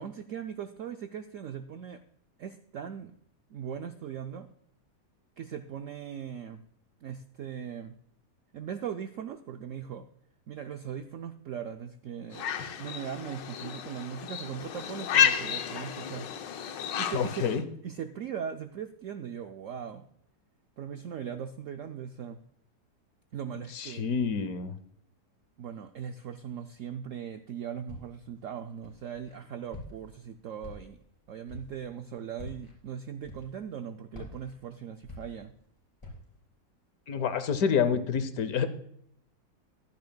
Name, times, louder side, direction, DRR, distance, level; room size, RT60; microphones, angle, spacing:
voice 1, 0.0-2.0 2.4-3.1 3.5-4.5 5.4-6.6 7.0-8.0 8.5-10.1 10.5-12.5 12.8-16.3 17.0-20.1 20.8-22.4 23.3-24.1 25.6-31.0 31.3-35.5 37.2-37.4, right 8 dB, 75° right, 7 dB, 0.7 m, -39 dB
sound 1, 12.3-17.6, left 8 dB, 85° left, 1.5 m, -31 dB
voice 2, 17.1-17.6 23.7-24.7 37.1-38.7, left 6 dB, 65° left, 12 dB, 1.2 m, -28 dB
Walk footsteps, 27.9-28.3 28.8-29.3 29.7-30.2 30.6-31.1 31.5-31.8 32.3-32.7 33.2-33.7 34.1-35.6 36.0-36.4, left 2 dB, 15° left, 3.6 m, -46 dB
15.5 x 10.5 x 2.2 m, 0.71 s
omnidirectional pair, 1.9 m